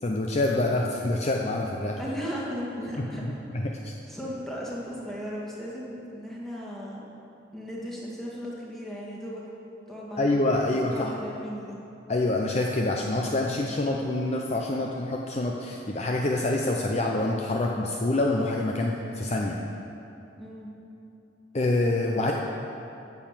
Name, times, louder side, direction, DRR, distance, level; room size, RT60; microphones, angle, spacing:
voice 1, 0.0-2.0 3.0-3.1 3.6-3.9 10.2-11.1 12.1-19.6 21.5-22.3, left 2 dB, 35° left, 0 dB, 0.6 m, -26 dB
voice 2, 2.0-3.4 4.1-7.0 7.5-9.4 9.9-10.3 10.6-11.8 20.4-20.7 22.1-22.3, equal, ahead, -6 dB, 1.9 m, -36 dB
9.9 x 7.0 x 7.4 m, 2.8 s
head